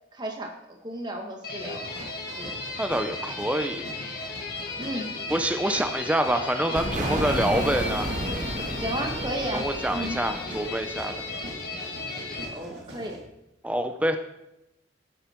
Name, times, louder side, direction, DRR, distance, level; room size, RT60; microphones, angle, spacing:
voice 1, 0.1-0.5 0.8-1.8 2.4-2.5 4.8-5.1 8.8-9.6 9.9-10.2 12.5-13.2, right 1 dB, 25° right, 2 dB, 1.7 m, -33 dB
sound 1, 1.4-12.5, left 3 dB, 50° left, 2.2 m, -35 dB
sound 2, 1.6-13.2, equal, 60° right, 2.4 m, -43 dB
voice 2, 2.8-3.9 5.3-8.2 9.5-11.2 13.6-14.2, right 1 dB, 5° right, 7 dB, 0.6 m, -26 dB
sound 3, 6.8-11.4, right 1 dB, 45° right, 1.5 m, -32 dB
12.5 x 8.9 x 4.5 m, 0.89 s
head